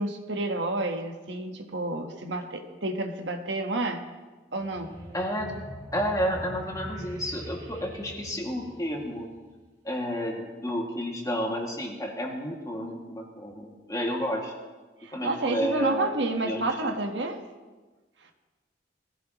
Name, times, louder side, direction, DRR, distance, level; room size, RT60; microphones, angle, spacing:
voice 1, 0.0-4.0 4.5-4.9 15.0-17.4, right 2 dB, 85° right, 4 dB, 1.4 m, -30 dB
sound 1, 4.6-9.5, equal, 25° right, 2.5 m, -43 dB
voice 2, 5.1-5.5 5.9-9.3 9.8-14.5 15.1-16.1 16.4-17.0, equal, 20° left, 0 dB, 2.2 m, -31 dB
20.5 x 15.0 x 3.0 m, 1.3 s
head